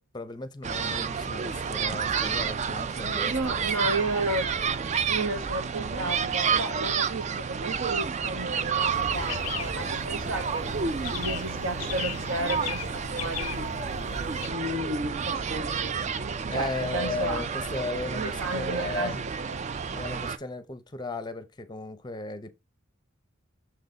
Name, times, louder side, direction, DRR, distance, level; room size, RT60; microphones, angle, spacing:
voice 1, 0.0-3.7 16.5-19.2 19.9-22.6, left 3 dB, 20° left, 0.6 m, -36 dB
sound 1, 0.6-20.4, right 6 dB, 35° right, 0.4 m, -30 dB
voice 2, 3.2-4.5 5.1-10.7 11.1-13.7 14.4-16.0 16.5-17.5 18.1-19.7, right 2 dB, 70° right, 1.3 m, -33 dB
sound 2, 8.9-14.5, left 9 dB, 90° left, 0.5 m, -38 dB
6.4 x 3.9 x 3.9 m
head